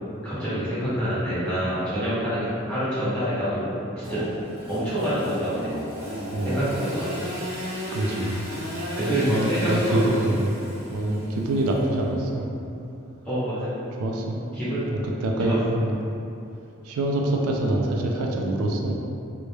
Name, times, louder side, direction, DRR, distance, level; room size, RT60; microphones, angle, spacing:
voice 1, 0.2-3.6 4.0-4.2 4.7-5.7 6.4-7.1 9.0-10.2 13.2-13.7 14.5-14.9 15.4-15.6, equal, 5° left, -13 dB, 0.7 m, -26 dB
Engine / Sawing, 4.0-12.3, equal, 40° right, 0.8 m, -34 dB
voice 2, 6.3-6.7 7.9-8.5 9.3-10.5 10.9-12.5 13.9-14.4 15.0-15.9 16.8-19.0, right 1 dB, 85° right, 1 dB, 0.3 m, -25 dB
2.2 x 2.1 x 3.0 m, 2.7 s
head